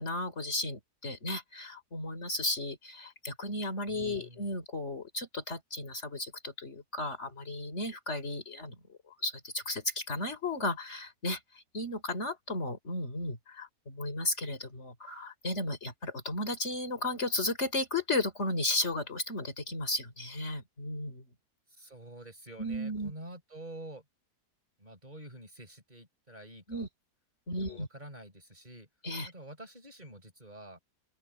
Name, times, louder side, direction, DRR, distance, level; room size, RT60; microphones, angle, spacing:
voice 1, 0.0-21.2 22.6-23.1 26.7-26.9 27.5-27.9 29.0-29.3, left 2 dB, 45° left, 3.9 m, -34 dB
voice 2, 3.9-4.5 21.7-24.0 24.8-26.9 27.5-28.9 29.2-30.8, right 1 dB, 25° right, 4.7 m, -48 dB
open air
omnidirectional pair, 1.7 m